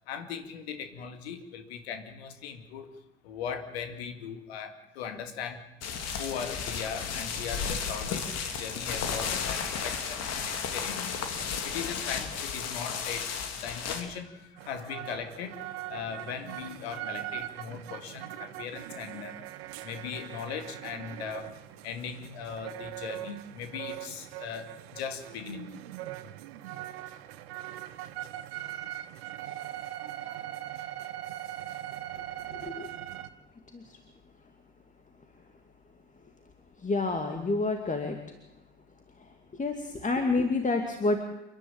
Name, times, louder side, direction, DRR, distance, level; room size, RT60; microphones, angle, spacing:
voice 1, 0.1-2.9 3.2-5.7 6.2-11.2 11.6-19.4 19.8-21.6 21.8-25.8, left 7 dB, 70° left, 8 dB, 2.5 m, -39 dB
sound 1, 5.8-14.0, left 6 dB, 50° left, 3.1 m, -33 dB
sound 2, 14.6-33.3, right 14 dB, 70° right, 1.2 m, -41 dB
voice 2, 32.5-32.9 33.7-34.0 36.8-38.2 39.5-41.2, left 3 dB, 25° left, 5 dB, 2.6 m, -29 dB
30.0 x 11.5 x 8.9 m, 1.0 s
figure-of-eight pair, 55°, 32 cm